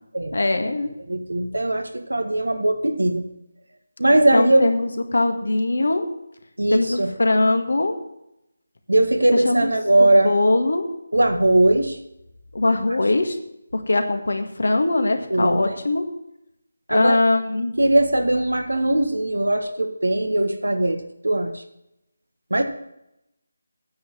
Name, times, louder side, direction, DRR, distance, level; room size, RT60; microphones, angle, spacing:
voice 1, 0.3-0.9 4.3-6.1 6.7-8.0 9.3-9.7 10.0-10.9 12.5-13.4 13.7-16.0 16.9-17.7, left 2 dB, 70° left, 6 dB, 1.7 m, -21 dB
voice 2, 1.1-3.3 4.0-4.7 6.6-7.1 8.9-10.3 11.1-12.0 15.3-15.7 16.9-17.2 17.8-21.6 22.5-22.6, right 1 dB, 80° right, 7 dB, 1.6 m, -20 dB
9.8 x 7.6 x 7.2 m, 0.84 s
figure-of-eight pair, 160°, 0 cm